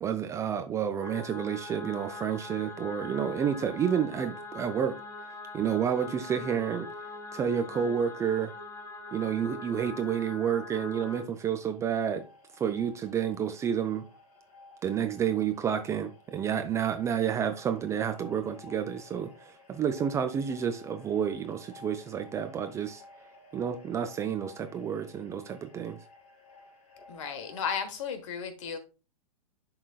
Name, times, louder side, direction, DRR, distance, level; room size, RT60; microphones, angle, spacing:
voice 1, 0.0-5.0 5.5-6.9 7.3-8.5 9.1-12.2 12.6-14.1 14.8-23.0 23.5-26.0, right 8 dB, 15° right, 0.4 m, -30 dB
sound 1, 1.0-11.2, left 3 dB, 15° left, 1.2 m, -42 dB
sound 2, 11.1-27.8, left 2 dB, 30° left, 3.2 m, -54 dB
voice 2, 27.1-28.8, left 6 dB, 55° left, 1.3 m, -34 dB
11.0 x 3.9 x 2.3 m
figure-of-eight pair, 100°, 19 cm